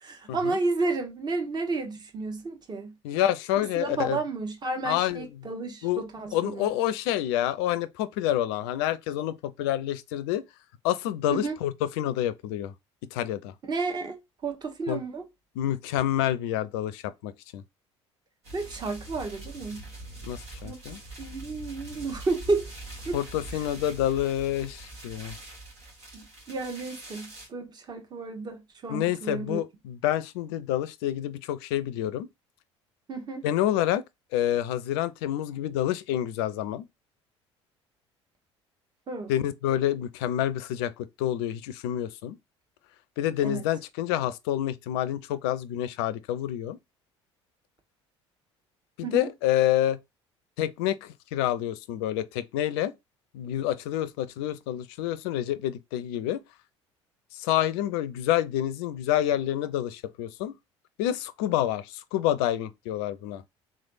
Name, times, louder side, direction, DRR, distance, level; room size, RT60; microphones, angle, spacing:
voice 1, 0.0-2.9 3.6-6.7 11.3-11.6 13.7-15.2 18.5-19.8 20.6-20.8 21.2-22.7 23.0-23.2 23.5-23.6 26.1-29.6 33.1-33.4 39.1-39.3 43.4-43.6 49.0-49.3, right 3 dB, 30° right, 1.1 m, -32 dB
voice 2, 3.0-4.2 4.8-5.3 5.8-6.0 6.3-10.4 10.8-12.7 13.1-13.5 14.9-15.0 15.6-17.6 20.2-21.0 23.1-25.4 28.9-32.3 33.4-34.0 34.3-36.8 39.3-42.4 43.2-46.8 49.0-50.0 50.6-52.9 53.3-56.4 57.4-60.5 61.0-63.4, left 12 dB, 60° left, 0.4 m, -28 dB
sound 1, 18.4-27.5, right 2 dB, 70° right, 1.8 m, -43 dB
3.7 x 3.3 x 2.5 m
figure-of-eight pair, 60°, 15 cm